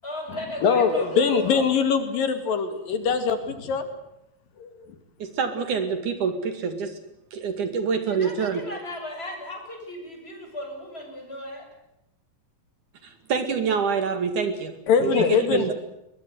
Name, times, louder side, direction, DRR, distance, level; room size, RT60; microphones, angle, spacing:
voice 1, 0.0-1.6 8.1-11.7, left 1 dB, 15° left, 2 dB, 8.0 m, -36 dB
voice 2, 0.6-3.9 4.6-4.7 14.9-15.7, left 6 dB, 75° left, 9 dB, 3.9 m, -22 dB
voice 3, 5.2-7.0 7.3-8.6 13.0-14.7 15.0-15.7, right 5 dB, 65° right, 8 dB, 3.5 m, -26 dB
23.0 x 22.0 x 8.1 m, 0.86 s
omnidirectional pair, 4.0 m